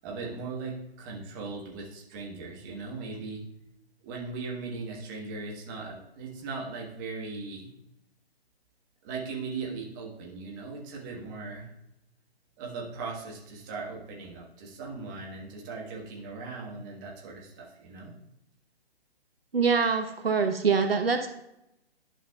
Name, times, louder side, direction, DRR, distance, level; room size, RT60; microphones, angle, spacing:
voice 1, 0.0-3.4 4.0-7.7 9.0-11.7 12.6-18.1, right 4 dB, 20° right, -2 dB, 1.4 m, -38 dB
voice 2, 19.5-21.3, right 5 dB, 65° right, 6 dB, 1.0 m, -24 dB
11.5 x 5.6 x 2.3 m, 0.83 s
figure-of-eight pair, 140°, 32 cm